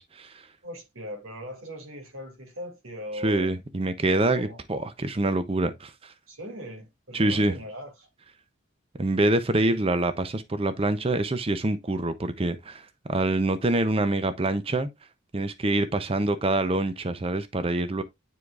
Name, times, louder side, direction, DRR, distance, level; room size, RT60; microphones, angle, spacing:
voice 1, 0.0-0.5 3.2-6.1 7.1-7.5 9.0-14.9 15.3-18.0, right 2 dB, 30° right, 0.6 m, -26 dB
voice 2, 0.6-3.5 4.4-4.6 6.3-8.1, equal, 90° right, 2.4 m, -39 dB
9.3 x 4.7 x 2.4 m
head